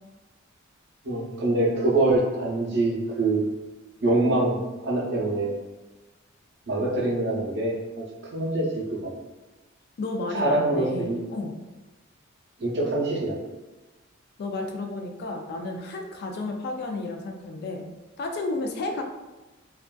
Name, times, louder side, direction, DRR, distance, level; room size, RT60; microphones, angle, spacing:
voice 1, 1.0-3.4 4.0-5.5 6.7-8.0 8.3-9.1 10.3-11.2 12.6-13.3, right 2 dB, 55° right, -3 dB, 0.6 m, -24 dB
voice 2, 10.0-11.5 14.4-17.9 18.2-19.0, left 2 dB, 50° left, 3 dB, 0.3 m, -32 dB
2.5 x 2.3 x 2.2 m, 1.1 s
head